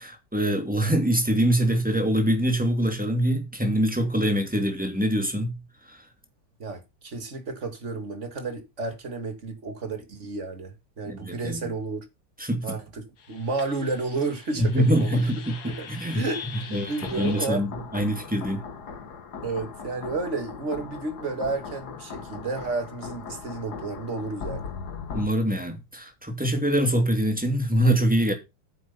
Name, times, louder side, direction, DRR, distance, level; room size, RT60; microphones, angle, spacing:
voice 1, 0.0-5.6 5.9-6.0 11.1-11.7 12.4-12.8 14.6-18.6 25.1-28.3, right 1 dB, 5° right, 2.8 m, -24 dB
voice 2, 6.6-12.0 12.6-15.2 15.6-15.9 16.1-17.7 19.4-24.7, right 3 dB, 40° right, 2.5 m, -32 dB
sound 1, 13.2-25.3, left 6 dB, 60° left, 2.0 m, -40 dB
9.6 x 7.7 x 5.8 m
omnidirectional pair, 2.0 m